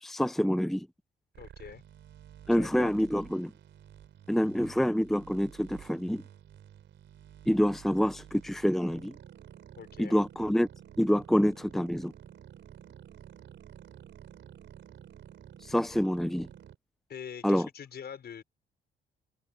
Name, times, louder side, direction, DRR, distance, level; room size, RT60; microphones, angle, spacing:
voice 1, 0.0-0.9 2.5-3.5 4.3-6.2 7.5-9.2 10.0-10.7 11.0-12.1 15.6-16.5 17.4-17.7, equal, ahead, 0.8 m, -27 dB
sound 1, 1.3-16.8, right 10 dB, 70° right, 4.5 m, -51 dB
voice 2, 1.4-1.8 2.6-2.9 9.8-10.2 17.1-18.4, left 7 dB, 55° left, 5.7 m, -43 dB
open air
cardioid pair, 90°, 20 cm